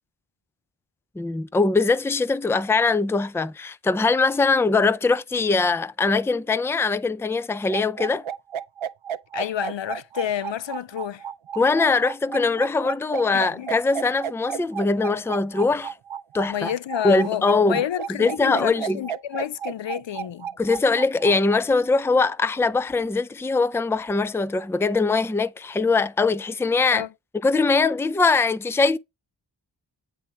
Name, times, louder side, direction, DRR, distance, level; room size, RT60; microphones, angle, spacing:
voice 1, 1.2-8.2 11.6-15.9 16.3-16.7 17.0-17.8 18.2-19.0 20.6-27.0 27.4-29.0, left 3 dB, 5° left, 0.4 m, -22 dB
sound 1, 7.7-21.6, right 8 dB, 85° right, 0.6 m, -32 dB
voice 2, 9.3-11.2 13.3-13.7 16.5-20.5 26.9-27.1, left 10 dB, 70° left, 0.5 m, -29 dB
9.9 x 3.3 x 5.8 m
wide cardioid pair, 45°, 47 cm